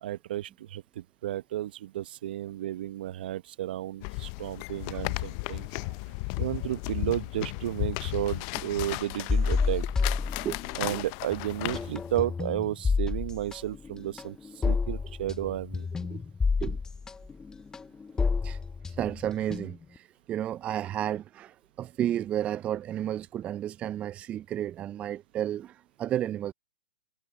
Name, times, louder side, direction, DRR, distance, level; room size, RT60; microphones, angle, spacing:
voice 1, 0.0-5.7 6.4-9.8 10.8-15.9, right 13 dB, 60° right, 0.9 m, -33 dB
sound 1, 4.0-12.2, left 27 dB, 40° left, 0.5 m, -35 dB
sound 2, 9.3-11.0 11.3-20.0, left 4 dB, 10° left, 1.3 m, -30 dB
voice 2, 18.9-26.5, right 11 dB, 20° right, 0.3 m, -32 dB
hypercardioid pair, 130°, 6 cm